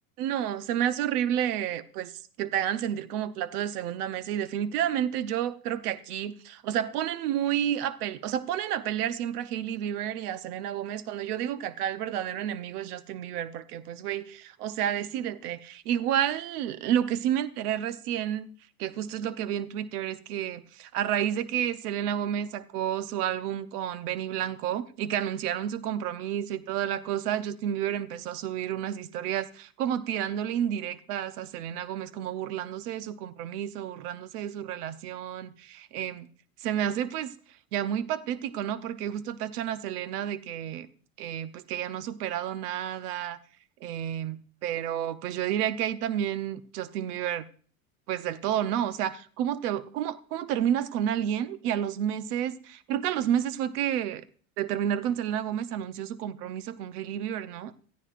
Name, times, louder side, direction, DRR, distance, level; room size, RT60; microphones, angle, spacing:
voice 1, 0.2-18.5 18.8-36.3 36.6-37.3 37.7-40.9 41.2-43.4 43.8-47.4 48.1-54.2 54.6-57.7, right 10 dB, 85° right, 0.8 m, -30 dB
18.0 x 14.0 x 2.5 m
supercardioid pair, 105°, 45 cm